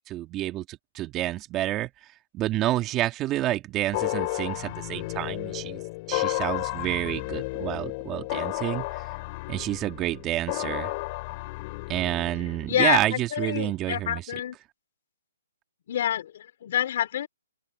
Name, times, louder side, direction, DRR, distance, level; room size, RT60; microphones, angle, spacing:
voice 1, 0.1-5.8 6.1-9.1 9.5-10.9 11.9-14.2, right 15 dB, 20° right, 1.7 m, -29 dB
sound 1, 3.9-12.7, left 24 dB, 30° left, 3.6 m, -32 dB
voice 2, 12.7-14.6 15.9-17.3, left 11 dB, 50° left, 3.7 m, -27 dB
open air
hypercardioid pair, 155°, 0 cm